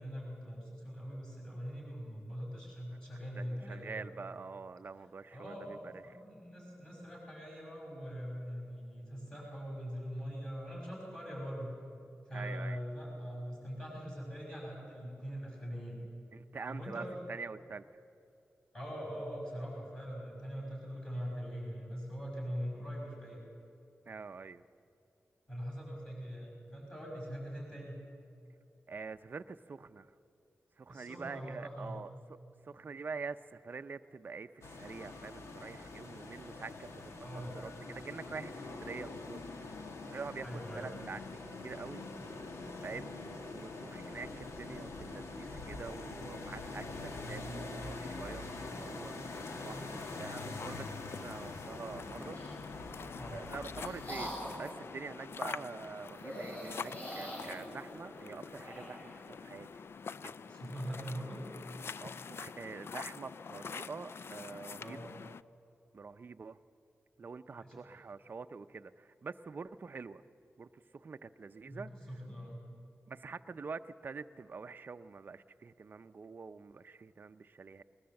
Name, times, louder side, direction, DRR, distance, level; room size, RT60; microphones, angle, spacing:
voice 1, 0.0-4.1 5.3-11.7 12.3-16.0 16.7-17.2 18.7-23.4 25.5-28.0 30.9-32.1 37.2-37.5 40.4-40.9 53.2-53.4 60.5-61.4 64.8-65.0 67.6-67.8 71.6-72.6, equal, 15° left, -2 dB, 5.9 m, -42 dB
voice 2, 3.4-6.2 12.3-12.8 16.3-17.8 24.1-24.6 28.9-30.1 30.8-32.4 32.6-39.8 40.1-41.2 41.6-42.1 42.8-43.1 43.5-48.5 48.8-52.4 53.3-59.8 60.2-60.3 62.0-65.0 65.9-66.6 67.2-70.2 70.6-72.2 73.1-77.8, right 4 dB, 45° right, 9 dB, 0.6 m, -46 dB
sound 1, 34.6-54.1, left 2 dB, 80° left, 1.8 m, -44 dB
sound 2, 49.3-65.4, left 5 dB, 60° left, 0.4 m, -46 dB
sound 3, 52.0-52.6 53.3-54.7 56.1-59.2, equal, 35° left, 6.6 m, -44 dB
20.0 x 20.0 x 7.7 m, 2.6 s
wide cardioid pair, 155°, 5 cm